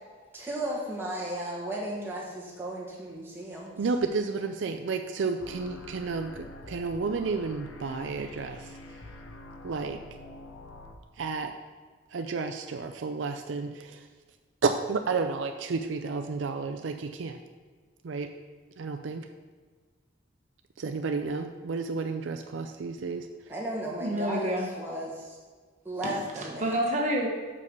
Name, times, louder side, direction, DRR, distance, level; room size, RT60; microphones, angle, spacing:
voice 1, 0.3-3.8 23.5-25.4 25.8-26.6, right 1 dB, 10° right, -5 dB, 1.6 m, -35 dB
voice 2, 3.8-8.6 9.6-10.0 11.2-11.5 12.1-14.0 14.6-17.4 18.0-18.3 18.8-19.2 20.8-23.3, right 4 dB, 75° right, 6 dB, 0.4 m, -31 dB
sound 1, 5.4-10.9, left 2 dB, 90° left, 0.8 m, -46 dB
voice 3, 24.0-24.7 26.3-27.3, equal, 35° right, -1 dB, 1.2 m, -28 dB
5.4 x 5.3 x 6.6 m, 1.4 s
head